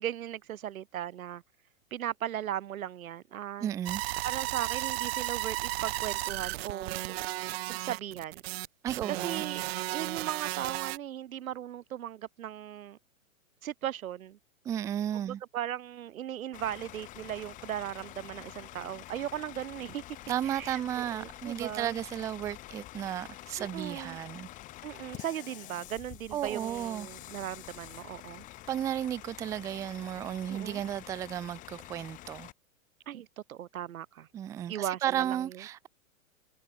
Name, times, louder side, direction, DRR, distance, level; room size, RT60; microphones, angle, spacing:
voice 1, 0.0-1.4 1.9-3.7 4.2-7.2 7.7-8.4 9.1-9.6 9.9-13.0 13.6-14.4 15.1-20.2 20.4-22.0 23.6-24.2 24.8-28.5 30.5-30.8 33.1-34.3 34.7-35.6, right 11 dB, 90° right, 1.0 m, -37 dB
voice 2, 3.6-4.0 8.8-9.4 14.7-15.4 20.3-24.5 26.3-27.1 28.7-32.5 34.3-35.9, right 11 dB, 10° right, 0.4 m, -34 dB
sound 1, 3.9-11.0, right 18 dB, 50° right, 1.2 m, -34 dB
Bus / Idling, 16.5-32.5, left 16 dB, 20° left, 0.8 m, -47 dB
hypercardioid pair, 145°, 40 cm